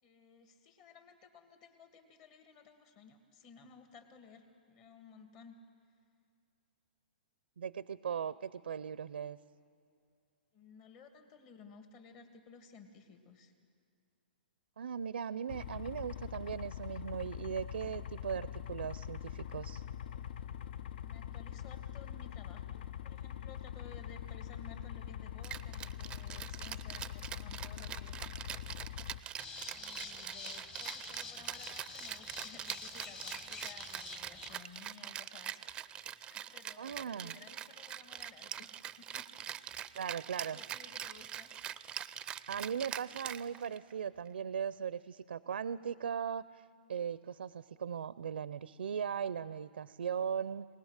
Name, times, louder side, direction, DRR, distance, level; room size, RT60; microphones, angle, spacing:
voice 1, 0.0-5.5 10.5-13.5 21.0-28.9 29.7-35.7 36.1-39.5 40.3-41.5, left 5 dB, 40° left, 6 dB, 2.3 m, -56 dB
voice 2, 7.6-9.4 14.8-19.8 36.8-37.3 40.0-40.6 42.5-46.6 46.9-50.7, right 7 dB, 85° right, 17 dB, 0.5 m, -38 dB
sound 1, 15.5-29.2, left 10 dB, 65° left, 0.6 m, -43 dB
Rattle (instrument), 25.4-43.9, right 10 dB, 15° right, 0.5 m, -44 dB
sound 2, 29.4-34.6, left 4 dB, 20° left, 1.3 m, -47 dB
20.0 x 19.5 x 6.5 m, 2.5 s
hypercardioid pair, 135°, 6 cm